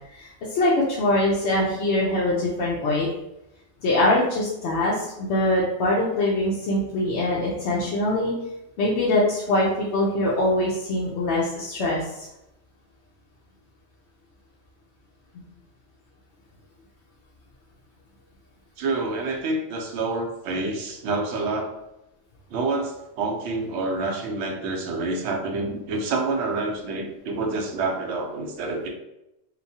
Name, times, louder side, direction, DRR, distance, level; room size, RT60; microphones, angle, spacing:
voice 1, 0.1-3.1 3.8-8.3 8.8-12.3 15.3-15.4, left 1 dB, 75° left, -5 dB, 0.8 m, -23 dB
voice 2, 18.8-21.7 22.5-28.9, right 3 dB, 75° right, 2 dB, 0.8 m, -27 dB
3.0 x 2.1 x 2.6 m, 0.88 s
omnidirectional pair, 1.2 m